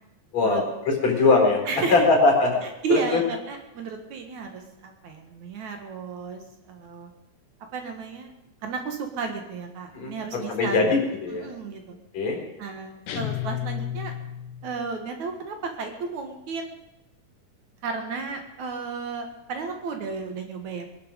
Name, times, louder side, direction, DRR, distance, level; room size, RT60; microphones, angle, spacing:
voice 1, 0.3-1.6 1.9-2.6 2.9-3.2 9.9-11.5 12.1-12.4, left 3 dB, 55° left, 0 dB, 5.6 m, -21 dB
voice 2, 1.7-2.0 2.6-7.1 7.7-8.3 8.6-10.9 11.3-12.0 12.6-14.1 14.6-16.8 17.8-20.9, right 4 dB, 65° right, 4 dB, 2.9 m, -33 dB
sound 1, 13.1-14.8, left 12 dB, 85° left, 2.7 m, -32 dB
22.5 x 11.5 x 5.2 m, 0.91 s
omnidirectional pair, 3.7 m